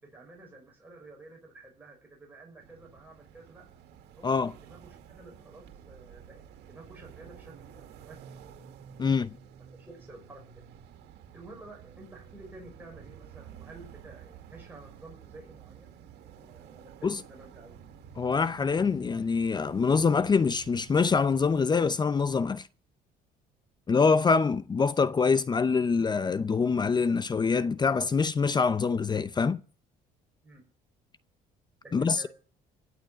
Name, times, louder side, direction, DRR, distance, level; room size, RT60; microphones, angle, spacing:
voice 1, 0.0-3.7 4.2-8.2 8.5-8.6 9.0-9.1 9.7-10.4 11.3-17.7 30.4-30.6 31.8-32.3, right 2 dB, 10° right, 5.9 m, -51 dB
sound 1, 2.6-21.7, right 8 dB, 80° right, 2.2 m, -51 dB
voice 2, 9.0-9.3 17.0-17.2 18.2-22.6 23.9-29.6 31.9-32.2, left 5 dB, 25° left, 0.6 m, -25 dB
16.0 x 8.6 x 7.6 m
cardioid pair, 110°, 17 cm